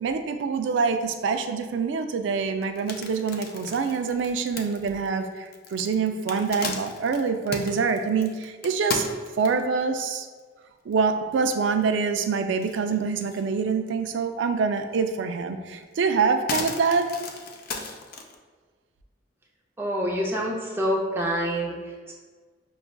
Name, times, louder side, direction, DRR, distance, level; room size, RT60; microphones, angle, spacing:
voice 1, 0.0-9.1 9.4-10.3 10.9-17.1, right 5 dB, 80° right, 8 dB, 0.3 m, -25 dB
sound 1, 2.6-9.8 10.4-10.5 10.9-11.0 11.3-12.2 12.5-13.5 13.9-14.0 15.3-15.4 15.8-18.3, left 4 dB, 55° left, 0.4 m, -36 dB
voice 2, 19.8-21.7, equal, 15° right, -3 dB, 0.5 m, -26 dB
6.3 x 2.3 x 2.2 m, 1.5 s
head